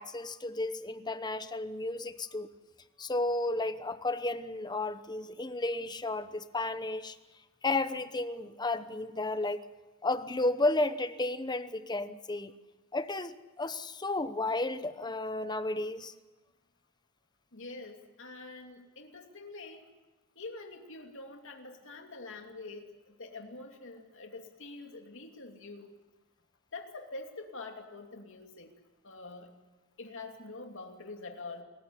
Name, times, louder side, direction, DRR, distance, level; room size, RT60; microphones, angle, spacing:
voice 1, 0.0-2.5 3.0-7.2 7.6-9.6 10.0-12.5 12.9-16.1, left 2 dB, 20° left, 12 dB, 0.9 m, -33 dB
voice 2, 17.5-19.8 20.4-25.9 26.7-28.7 29.0-29.5 30.0-31.6, left 3 dB, 60° left, 3 dB, 2.8 m, -45 dB
26.5 x 15.0 x 10.0 m, 1.2 s
head